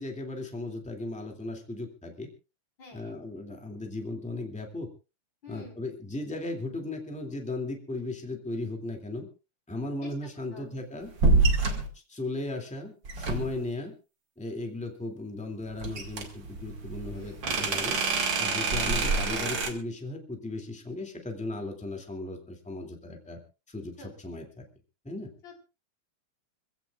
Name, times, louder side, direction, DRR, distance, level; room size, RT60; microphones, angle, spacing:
voice 1, 0.0-2.3 2.9-4.9 5.5-9.3 9.7-11.1 12.1-13.9 14.4-18.0 18.4-23.4 23.7-24.6 25.0-25.3, left 2 dB, ahead, 3 dB, 2.1 m, -36 dB
voice 2, 2.8-3.1 5.4-5.8 10.0-10.8 11.6-11.9 17.1-17.7 24.0-24.1 25.4-25.5, left 3 dB, 35° left, 1 dB, 5.0 m, -49 dB
sound 1, 11.2-11.9 13.0-13.7 15.8-19.7, right 3 dB, 40° right, 2.6 m, -26 dB
25.5 x 16.0 x 2.5 m, 0.31 s
omnidirectional pair, 3.5 m